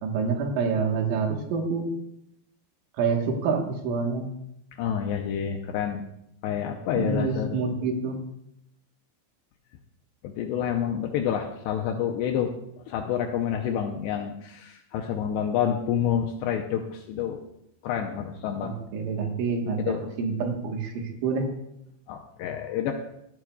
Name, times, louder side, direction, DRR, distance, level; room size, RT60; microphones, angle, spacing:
voice 1, 0.0-1.9 3.0-4.3 7.0-8.2 18.6-21.5, right 5 dB, 80° right, 2 dB, 3.8 m, -27 dB
voice 2, 4.8-6.0 6.4-7.6 10.2-12.5 12.9-17.4 17.8-18.7 19.9-20.0 22.1-22.9, left 9 dB, 80° left, 2 dB, 2.5 m, -28 dB
17.5 x 12.0 x 2.3 m, 0.79 s
omnidirectional pair, 5.6 m